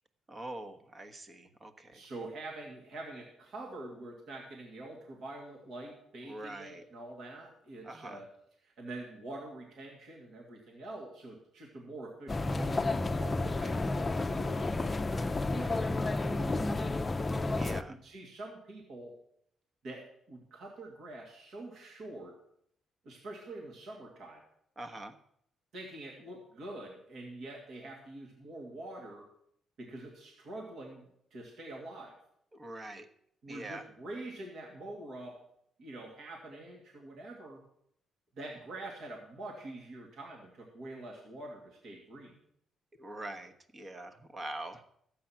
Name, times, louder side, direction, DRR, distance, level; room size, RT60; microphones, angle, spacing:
voice 1, 0.3-2.0 6.3-6.8 7.8-8.2 15.6-15.9 17.5-18.0 24.8-25.1 32.5-33.1 33.5-33.8 43.0-44.9, right 1 dB, 30° right, 8 dB, 1.2 m, -44 dB
voice 2, 1.9-8.3 8.6-17.0 17.9-19.2 19.8-22.4 23.0-24.4 25.7-29.3 29.8-32.1 33.4-35.4 35.8-37.6 38.4-42.4, right 2 dB, 65° right, 0 dB, 2.3 m, -45 dB
sound 1, 12.3-17.8, left 2 dB, 25° left, 0.6 m, -31 dB
13.0 x 8.5 x 5.9 m, 0.72 s
cardioid pair, 90°, 0 cm